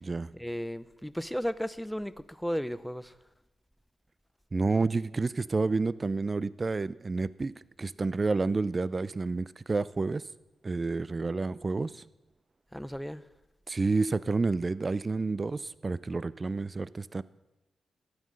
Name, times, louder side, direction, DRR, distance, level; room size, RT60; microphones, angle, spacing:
voice 1, 0.3-3.1 12.7-13.2, equal, 5° left, 17 dB, 0.6 m, -34 dB
voice 2, 4.5-7.5 7.8-10.3 10.6-12.0 13.7-17.2, right 3 dB, 40° right, 19 dB, 0.5 m, -29 dB
12.5 x 9.2 x 6.4 m, 1.0 s
supercardioid pair, 45°, 0 cm